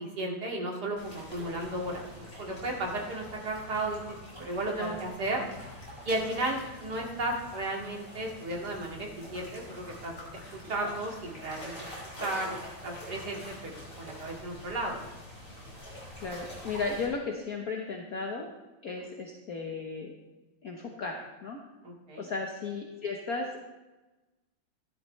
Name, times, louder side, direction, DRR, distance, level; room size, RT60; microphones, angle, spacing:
voice 1, 0.0-5.4 6.0-10.1 10.7-11.7 12.2-12.5 12.8-15.2 18.9-19.1 21.8-22.3, right 1 dB, 50° right, -1 dB, 2.8 m, -34 dB
sound 1, 1.0-17.0, left 1 dB, 25° left, 5.2 m, -45 dB
voice 2, 16.2-18.5 18.8-20.1 20.6-21.6 22.2-23.6, left 4 dB, 50° left, 1 dB, 1.4 m, -35 dB
15.0 x 12.0 x 3.2 m, 1.1 s
omnidirectional pair, 2.3 m